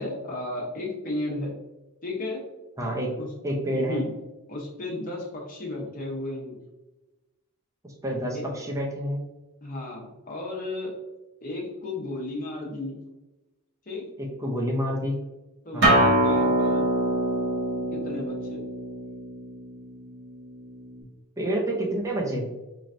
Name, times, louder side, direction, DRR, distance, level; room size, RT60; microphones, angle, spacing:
voice 1, 0.0-1.6 2.0-2.4 3.2-3.3 3.7-4.1 4.5-6.6 8.3-8.5 9.6-10.9 11.4-13.0 13.9-14.0 15.6-16.9 17.9-18.7, left 2 dB, 40° left, -1 dB, 0.9 m, -34 dB
voice 2, 2.8-3.1 3.4-4.0 7.8-9.2 14.2-15.2 15.7-16.0 21.4-22.5, equal, 15° right, -2 dB, 0.5 m, -28 dB
Acoustic guitar, 15.8-21.0, right 1 dB, 50° right, 1.2 m, -25 dB
4.0 x 3.2 x 2.5 m, 1.1 s
head